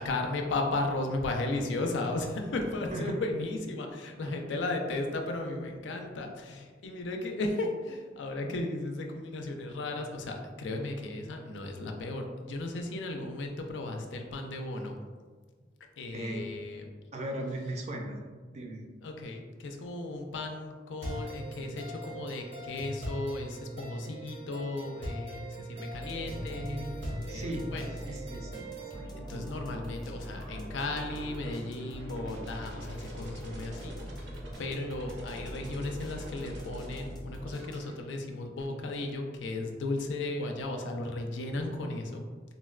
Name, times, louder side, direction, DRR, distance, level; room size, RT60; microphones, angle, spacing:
voice 1, 0.0-15.0 16.0-16.8 19.0-27.8 29.2-33.9 34.2-34.3 34.6-42.2, left 2 dB, 80° left, 3 dB, 0.4 m, -35 dB
voice 2, 16.1-16.6 17.1-18.2 18.5-18.9 27.3-27.7 28.0-29.5, right 1 dB, 35° right, 1 dB, 0.4 m, -38 dB
sound 1, 21.0-29.0, right 1 dB, 90° right, 1.0 m, -40 dB
sound 2, 25.9-38.1, equal, 25° left, 0.5 m, -43 dB
sound 3, 28.6-37.9, right 1 dB, 70° right, 0.6 m, -48 dB
3.8 x 2.1 x 2.3 m, 1.5 s
head